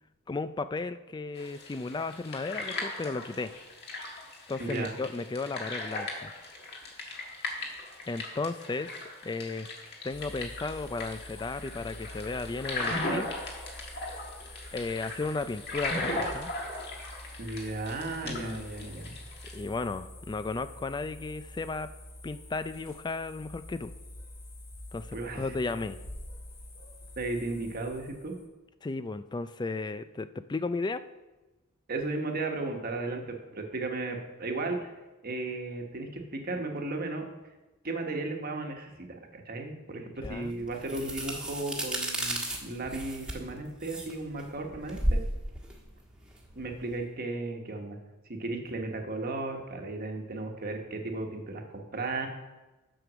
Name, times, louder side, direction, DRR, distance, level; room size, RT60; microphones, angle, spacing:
voice 1, 0.3-3.5 4.5-6.3 8.0-9.7 10.0-13.3 14.7-16.5 18.2-19.0 19.5-21.9 22.2-23.9 24.9-26.0 28.8-31.0 40.2-40.6, left 3 dB, 20° left, 12 dB, 0.3 m, -34 dB
sound 1, 1.4-19.6, left 2 dB, 50° left, 1.8 m, -38 dB
voice 2, 4.6-4.9 17.4-19.1 25.1-25.5 27.2-28.3 31.9-34.9 35.2-37.3 37.8-45.2 46.5-48.0 48.3-52.3, right 2 dB, 45° right, 3 dB, 1.3 m, -35 dB
sound 2, 10.1-28.5, left 1 dB, 65° left, 2.0 m, -47 dB
sound 3, 40.2-47.0, right 1 dB, 5° right, 1.3 m, -34 dB
7.8 x 6.8 x 6.2 m, 1.1 s
head